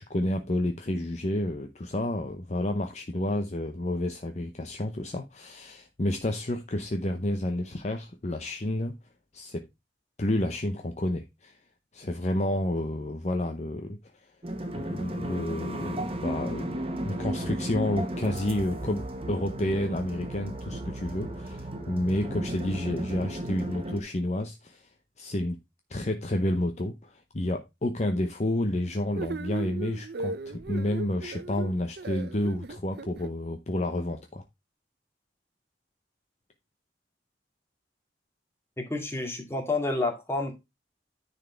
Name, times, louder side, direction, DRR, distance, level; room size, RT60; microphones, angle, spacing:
voice 1, 0.0-9.0 9.3-9.6 10.2-11.6 11.9-14.0 14.8-24.9 25.2-25.6 25.9-34.4, left 1 dB, 40° left, 0.7 m, -30 dB
sound 1, 14.4-24.0, right 1 dB, 30° right, 1.1 m, -34 dB
sound 2, 29.2-33.3, right 3 dB, 60° right, 0.6 m, -37 dB
voice 2, 38.8-40.5, left 2 dB, 15° left, 2.2 m, -29 dB
9.9 x 4.2 x 4.5 m
head